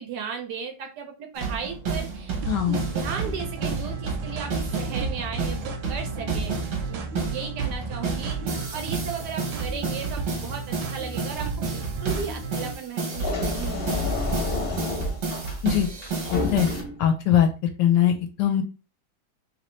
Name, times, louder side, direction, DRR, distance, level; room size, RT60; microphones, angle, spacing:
voice 1, 0.0-2.3 2.7-6.5 6.9-14.1 14.5-14.7, right 6 dB, 70° right, 4 dB, 1.0 m, -36 dB
sound 1, 1.4-16.8, right 4 dB, 50° right, 0.9 m, -31 dB
sound 2, 2.4-12.7, right 4 dB, 90° right, 1.4 m, -34 dB
voice 2, 2.5-2.8 15.6-15.9 16.3-17.5 17.8-18.6, left 10 dB, 75° left, 6 dB, 1.1 m, -21 dB
sound 3, 13.1-17.1, left 2 dB, 40° left, 0.9 m, -29 dB
3.1 x 2.9 x 3.0 m, 0.33 s
omnidirectional pair, 2.1 m